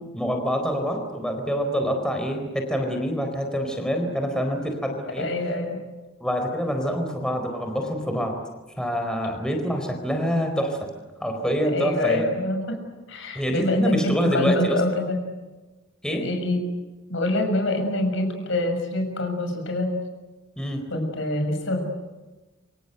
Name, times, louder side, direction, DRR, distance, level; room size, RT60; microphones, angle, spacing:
voice 1, 0.1-5.3 6.2-8.4 8.8-10.8 11.2-12.2 13.3-14.8 16.0-16.3 20.6-20.8, equal, 5° left, 4 dB, 4.3 m, -26 dB
voice 2, 5.2-5.8 11.7-12.8 13.1-15.2 16.2-16.6 17.1-19.9 20.9-21.9, left 1 dB, 70° left, 5 dB, 7.0 m, -25 dB
28.0 x 25.5 x 8.0 m, 1.2 s
head